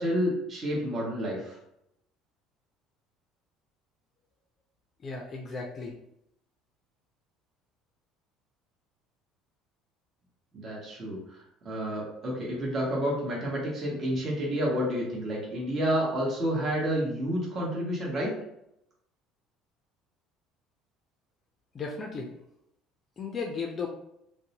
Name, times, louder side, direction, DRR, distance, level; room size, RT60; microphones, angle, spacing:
voice 1, 0.0-1.6 10.5-18.3, equal, 35° right, -4 dB, 0.9 m, -30 dB
voice 2, 5.0-6.0 21.7-22.3 23.2-23.9, left 4 dB, 35° left, 0 dB, 0.4 m, -35 dB
2.6 x 2.0 x 2.8 m, 0.78 s
supercardioid pair, 100°, 0 cm